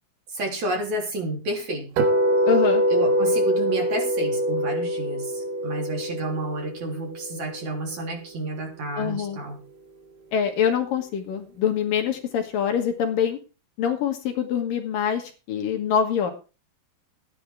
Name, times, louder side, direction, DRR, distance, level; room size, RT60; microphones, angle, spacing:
voice 1, 0.3-2.1 2.9-9.6, right 2 dB, 50° right, 1 dB, 4.6 m, -30 dB
sound 1, 2.0-8.0, equal, 85° right, 4.0 m, -24 dB
voice 2, 2.5-2.8 8.9-9.4 10.3-13.4 13.8-16.3, left 8 dB, 65° left, 5 dB, 3.0 m, -25 dB
14.0 x 10.5 x 4.6 m, 0.33 s
omnidirectional pair, 4.5 m